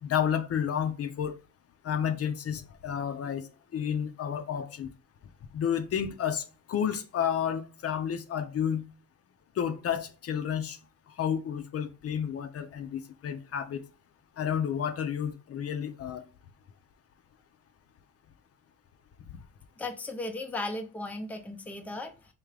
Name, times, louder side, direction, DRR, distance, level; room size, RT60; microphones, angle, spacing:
voice 1, 0.0-1.4 1.8-3.5 3.7-4.9 5.5-8.9 9.6-10.8 11.2-13.8 14.4-16.2, left 8 dB, 50° left, 0.5 m, -31 dB
voice 2, 19.8-22.3, left 2 dB, 5° left, 0.5 m, -36 dB
3.6 x 2.8 x 3.2 m
cardioid pair, 90°, 30 cm